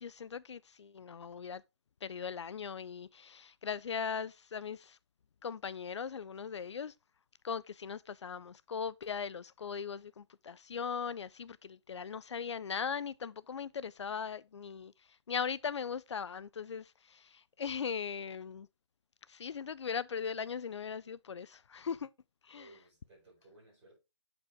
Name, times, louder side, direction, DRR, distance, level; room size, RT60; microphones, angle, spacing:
voice 1, 0.0-1.6 2.0-5.0 5.4-6.9 7.4-18.7 19.3-22.1 22.4-22.8, left 6 dB, 80° left, 0.4 m, -39 dB
voice 2, 22.5-24.0, right 2 dB, 10° right, 4.5 m, -59 dB
8.7 x 4.9 x 3.5 m
hypercardioid pair, 180°, 15 cm